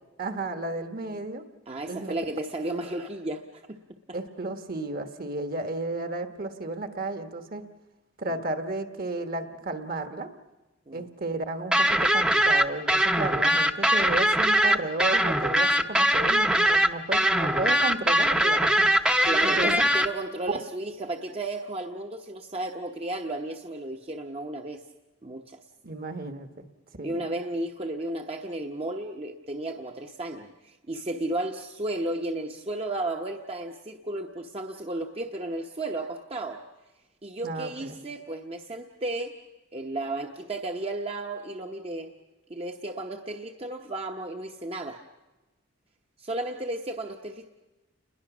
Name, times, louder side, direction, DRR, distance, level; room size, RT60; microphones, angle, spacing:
voice 1, 0.2-1.4 1.9-2.1 4.1-7.6 8.2-10.3 10.9-19.1 19.4-19.7 25.8-26.6 26.9-27.2 37.4-38.0, right 2 dB, 50° right, 8 dB, 1.5 m, -33 dB
voice 2, 1.7-3.8 8.3-8.4 10.9-11.1 19.2-24.8 25.2-25.6 27.0-36.6 37.2-39.3 39.7-42.1 42.5-45.0 46.2-47.5, right 2 dB, 30° right, 3 dB, 0.9 m, -33 dB
sound 1, 11.7-20.1, right 1 dB, 5° right, 0.7 m, -22 dB
29.0 x 21.5 x 6.1 m, 1.1 s
head